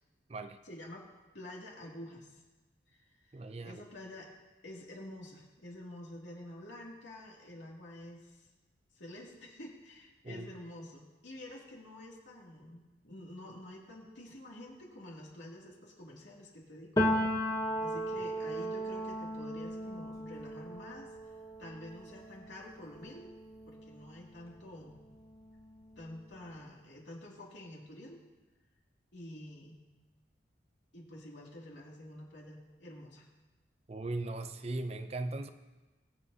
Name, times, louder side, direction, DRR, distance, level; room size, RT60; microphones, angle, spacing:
voice 1, 0.6-1.0 1.3-2.4 2.9-4.3 4.6-8.5 9.0-17.0 17.8-21.1 21.6-23.3 23.7-25.0 26.0-28.2 29.1-29.8 30.9-33.2, left 1 dB, 90° left, -3 dB, 2.6 m, -48 dB
voice 2, 3.3-3.8 10.2-10.5 33.9-35.5, right 2 dB, 35° right, 9 dB, 0.5 m, -38 dB
Piano, 17.0-24.6 24.9-26.5, equal, 20° left, 1.0 m, -36 dB
21.5 x 7.9 x 2.8 m, 1.2 s
head